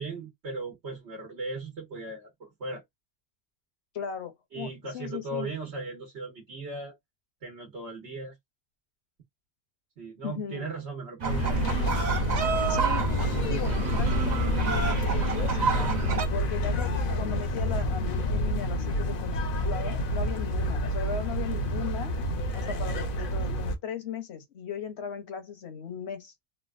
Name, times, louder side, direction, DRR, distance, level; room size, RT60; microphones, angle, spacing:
voice 1, 0.0-2.8 4.5-7.0 7.4-8.3 10.0-11.6, right 2 dB, 75° right, 1.3 m, -37 dB
voice 2, 3.9-5.5 10.2-10.7 12.4-13.1 13.5-16.0 16.3-22.1 22.5-26.3, left 7 dB, 75° left, 1.1 m, -38 dB
sound 1, 11.2-16.3, right 4 dB, 45° right, 0.7 m, -29 dB
sound 2, 11.3-23.8, left 1 dB, 55° left, 0.8 m, -28 dB
3.3 x 2.3 x 2.5 m
omnidirectional pair, 1.1 m